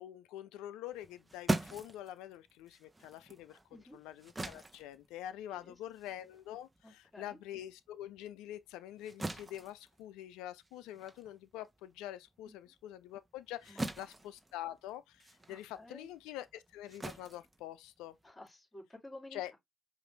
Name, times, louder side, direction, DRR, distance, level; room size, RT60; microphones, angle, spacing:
voice 1, 0.0-3.6 3.9-18.2 19.3-19.5, left 12 dB, 85° left, 0.3 m, -46 dB
sound 1, 0.9-7.7 8.1-18.3, right 2 dB, 20° right, 0.9 m, -43 dB
voice 2, 6.8-7.4 12.5-12.7 13.7-14.3 15.5-16.1 18.2-19.6, left 1 dB, 25° left, 3.2 m, -53 dB
4.8 x 2.6 x 3.2 m
hypercardioid pair, 40°, 0 cm